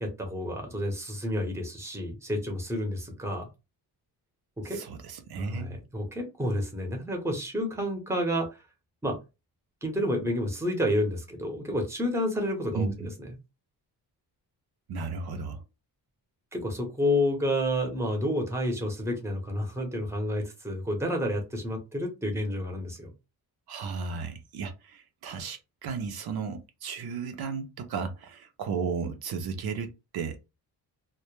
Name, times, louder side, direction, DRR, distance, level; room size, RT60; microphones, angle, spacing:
voice 1, 0.0-3.5 4.6-4.8 5.4-8.5 9.0-9.2 9.8-12.9 13.2-13.3 16.5-23.1, equal, 5° right, 0.7 m, -30 dB
voice 2, 4.6-5.8 12.7-12.9 14.9-15.6 23.7-30.4, right 5 dB, 65° right, 0.5 m, -34 dB
2.1 x 2.0 x 3.0 m
wide cardioid pair, 125°, 40 cm